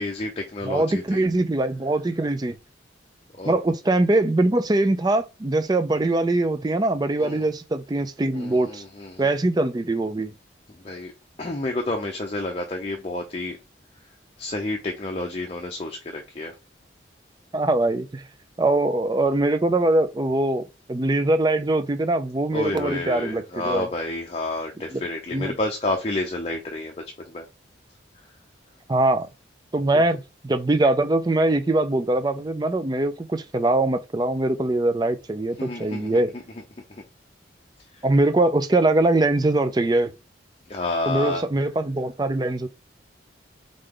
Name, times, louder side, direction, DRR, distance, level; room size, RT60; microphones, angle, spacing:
voice 1, 0.0-1.2 3.3-3.6 7.2-7.5 8.3-9.3 10.8-11.1 11.4-13.6 14.4-16.5 22.5-26.9 27.2-27.4 29.9-30.0 35.6-36.4 36.9-37.0 40.7-41.4, left 2 dB, 30° left, 0.6 m, -30 dB
voice 2, 0.7-2.6 3.4-8.8 9.2-10.3 17.5-18.2 18.6-20.6 20.9-23.9 24.9-25.0 25.3-25.5 28.9-29.3 29.7-36.3 38.0-40.1 41.1-42.7, right 2 dB, 20° right, 0.4 m, -22 dB
3.8 x 3.3 x 3.8 m
head